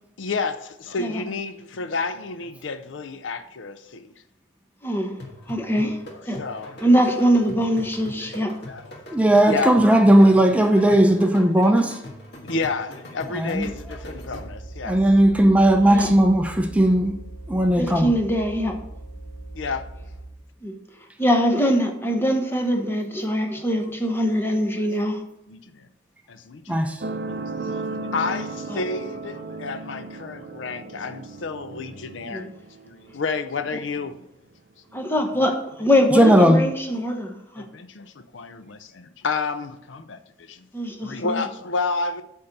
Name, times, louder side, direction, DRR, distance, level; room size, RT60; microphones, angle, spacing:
voice 1, 0.2-4.1 6.4-6.8 8.2-9.0 9.5-9.7 10.9-11.0 12.4-15.0 19.5-19.9 25.5-25.9 26.3-27.0 27.4-32.5 32.8-34.2 37.6-40.6 41.0-42.2, left 4 dB, 80° left, 0.6 m, -30 dB
voice 2, 4.8-5.2 5.5-6.0 6.3-6.4 6.8-8.5 15.9-16.1 17.8-18.8 20.6-20.7 21.2-25.2 28.7-28.8 32.2-32.5 34.9-37.6 40.7-41.4, equal, 10° left, 0.9 m, -22 dB
sound 1, 5.2-14.7, left 1 dB, 60° left, 1.5 m, -42 dB
voice 3, 9.1-12.0 13.3-13.7 14.8-17.2 17.5-18.1 26.7-27.0 36.1-36.6, right 1 dB, 5° right, 0.5 m, -17 dB
sound 2, 13.5-20.4, right 2 dB, 45° left, 1.8 m, -40 dB
sound 3, 27.0-34.1 34.9-35.0, right 3 dB, 55° right, 0.6 m, -35 dB
8.6 x 3.7 x 6.5 m
head